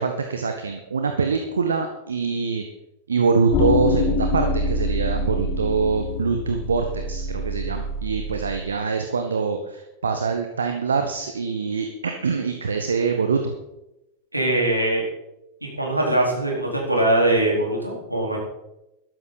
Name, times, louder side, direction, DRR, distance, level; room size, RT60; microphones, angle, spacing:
voice 1, 0.0-2.6 3.1-13.5, right 5 dB, 70° right, 5 dB, 1.2 m, -24 dB
sound 1, 3.5-8.6, left 2 dB, 35° left, 1.5 m, -25 dB
voice 2, 14.3-15.0 15.8-18.4, right 1 dB, 85° right, -2 dB, 4.2 m, -21 dB
13.0 x 13.0 x 4.1 m, 0.92 s
figure-of-eight pair, 90°, 0 cm